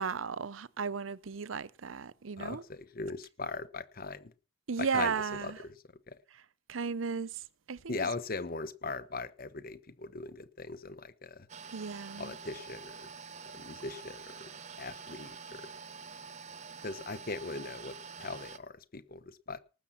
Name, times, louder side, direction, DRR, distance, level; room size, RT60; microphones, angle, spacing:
voice 1, 0.0-2.6 4.7-5.6 6.7-7.4 7.7-8.1 11.7-12.3, right 5 dB, 80° right, 0.7 m, -35 dB
voice 2, 2.4-4.3 4.8-5.1 5.4-5.8 6.1-6.2 7.9-11.5 12.2-13.1 13.5-14.5 14.8-15.7 16.8-19.6, left 3 dB, 50° left, 1.1 m, -40 dB
sound 1, 11.5-18.6, right 5 dB, 35° right, 0.9 m, -47 dB
19.0 x 7.2 x 5.8 m
head